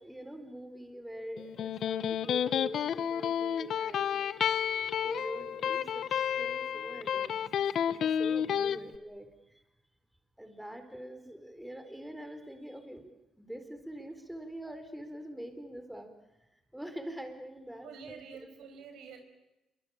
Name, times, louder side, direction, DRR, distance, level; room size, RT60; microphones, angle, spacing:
voice 1, 0.0-4.3 5.0-7.3 8.0-9.3 10.4-13.1 13.4-16.1 16.7-18.2, right 1 dB, 5° right, 7 dB, 4.2 m, -44 dB
Electric guitar, 1.4-8.8, left 9 dB, 65° left, 1.1 m, -31 dB
voice 2, 17.8-19.2, right 6 dB, 85° right, 6 dB, 5.5 m, -48 dB
27.5 x 24.0 x 8.8 m, 0.97 s
cardioid pair, 90°, 0 cm